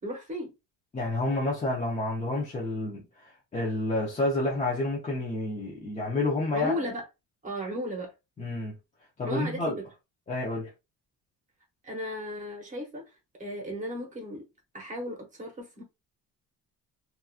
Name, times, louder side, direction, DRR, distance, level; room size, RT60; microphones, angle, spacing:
voice 1, 0.0-0.5 6.5-7.0 7.4-8.1 9.2-9.6 11.8-13.0 13.4-14.5 14.7-15.8, equal, 20° right, 0.9 m, -35 dB
voice 2, 0.9-6.7 8.4-8.7 9.2-9.8 10.3-10.7, left 2 dB, 20° left, 0.6 m, -29 dB
2.9 x 2.4 x 2.4 m
cardioid pair, 175°, 36 cm